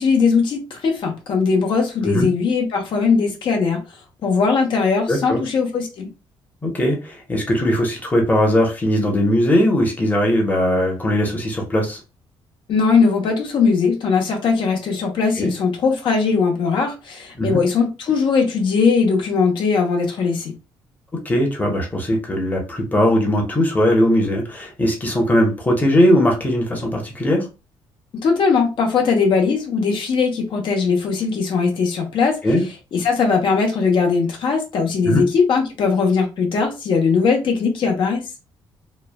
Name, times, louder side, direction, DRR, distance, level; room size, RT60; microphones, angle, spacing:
voice 1, 0.0-3.8 4.2-6.1 12.7-20.5 28.2-32.4 32.9-38.2, left 5 dB, 60° left, 0.8 m, -19 dB
voice 2, 5.1-5.4 6.6-12.0 15.4-15.5 17.4-17.6 21.2-27.4 32.4-32.6 35.0-35.2, equal, 15° left, 0.9 m, -19 dB
3.0 x 2.2 x 2.2 m
cardioid pair, 115°, 10 cm